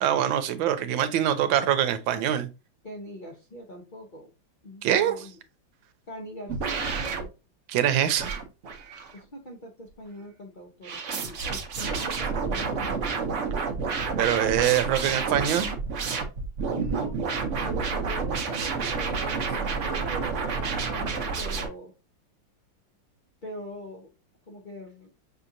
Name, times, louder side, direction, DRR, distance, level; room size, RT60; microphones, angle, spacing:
voice 1, 0.0-2.5 4.8-5.1 7.7-8.3 14.2-15.8, right 10 dB, 85° right, 1.4 m, -24 dB
voice 2, 2.8-4.3 4.6-5.4 6.1-7.3 9.1-13.4 16.7-17.2 17.5-21.9 23.4-24.1 24.5-25.1, right 1 dB, 50° left, 0.5 m, -42 dB
sound 1, 6.5-7.2 8.2-9.2 10.8-21.7, right 5 dB, 55° right, 0.9 m, -29 dB
6.2 x 2.8 x 2.5 m
omnidirectional pair, 2.1 m